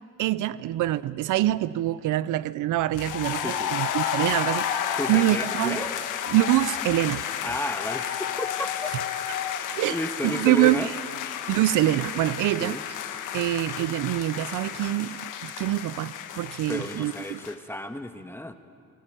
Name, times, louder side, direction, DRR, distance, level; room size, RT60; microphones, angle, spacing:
voice 1, 0.2-5.8 6.3-7.2 9.8-10.0 10.2-10.9 11.5-12.8 13.3-17.4, right 15 dB, 80° right, 0.6 m, -25 dB
sound 1, 2.9-17.5, left 9 dB, 90° left, 1.5 m, -31 dB
voice 2, 3.4-3.7 5.0-6.0 7.4-8.9 9.9-10.9 12.6-12.8 16.7-18.5, left 1 dB, 10° left, 1.6 m, -32 dB
27.5 x 16.5 x 9.1 m
cardioid pair, 90°, 30 cm